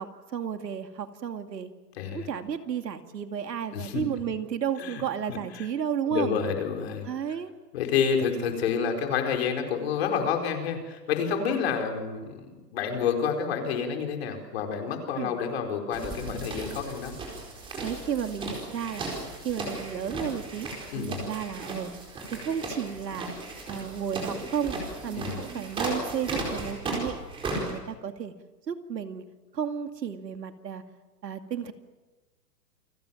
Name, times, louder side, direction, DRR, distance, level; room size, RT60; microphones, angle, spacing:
voice 1, 0.0-1.7 2.1-6.4 7.0-7.5 15.2-15.4 17.8-19.2 19.4-20.7 20.9-21.9 22.3-23.3 23.7-24.7 25.0-27.2 27.6-28.3 28.7-29.2 29.5-30.8 31.2-31.7, right 8 dB, 80° right, 7 dB, 2.7 m, -32 dB
voice 2, 2.0-2.3 3.7-4.0 4.8-5.0 5.3-5.4 6.1-7.1 7.7-17.1 20.9-21.2 25.2-25.4, left 6 dB, 40° left, 4 dB, 4.6 m, -29 dB
sound 1, 15.9-27.7, right 2 dB, 10° right, 4.5 m, -36 dB
29.0 x 21.5 x 7.4 m, 1.2 s
hypercardioid pair, 165°, 49 cm